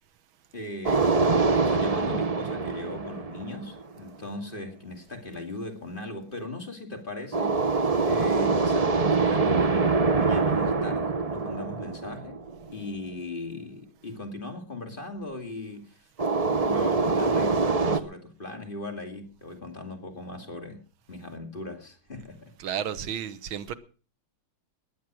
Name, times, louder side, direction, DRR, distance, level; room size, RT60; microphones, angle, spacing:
voice 1, 0.5-12.4 12.7-16.1 16.4-20.8 21.1-22.5, left 2 dB, 25° left, 2.7 m, -38 dB
sound 1, 0.8-3.9 7.3-12.7 16.2-18.0, right 4 dB, 30° right, 0.6 m, -24 dB
voice 2, 22.6-23.7, right 9 dB, 80° right, 1.8 m, -32 dB
19.0 x 10.0 x 6.2 m
omnidirectional pair, 2.2 m